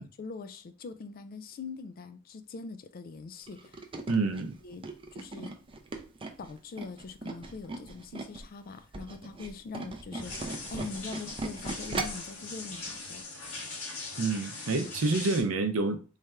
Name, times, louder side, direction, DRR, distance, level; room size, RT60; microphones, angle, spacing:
voice 1, 0.2-3.9 4.6-4.8 5.1-5.5 6.4-13.3, left 4 dB, 45° left, 0.3 m, -42 dB
Tools, 3.5-8.4 8.8-12.3 12.7-12.9 13.2-13.3, right 3 dB, 25° right, 0.5 m, -38 dB
voice 2, 4.1-4.5 14.2-16.2, right 3 dB, 75° right, 0.6 m, -28 dB
sound 1, 10.2-15.4, left 3 dB, 70° left, 1.4 m, -41 dB
3.2 x 2.4 x 4.3 m
head